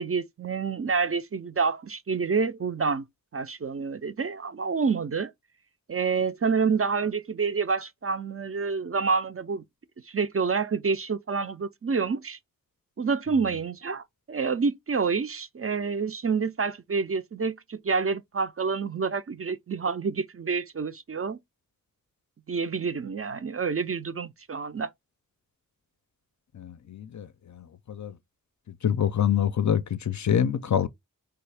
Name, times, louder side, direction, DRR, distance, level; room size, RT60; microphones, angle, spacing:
voice 1, 0.0-3.1 3.3-5.3 5.9-9.6 10.1-12.4 13.0-21.4 22.5-24.9, right 5 dB, 40° right, 0.4 m, -28 dB
voice 2, 26.5-28.2 28.7-30.9, left 9 dB, 55° left, 0.4 m, -26 dB
3.4 x 2.3 x 3.3 m
wide cardioid pair, 40°, 35 cm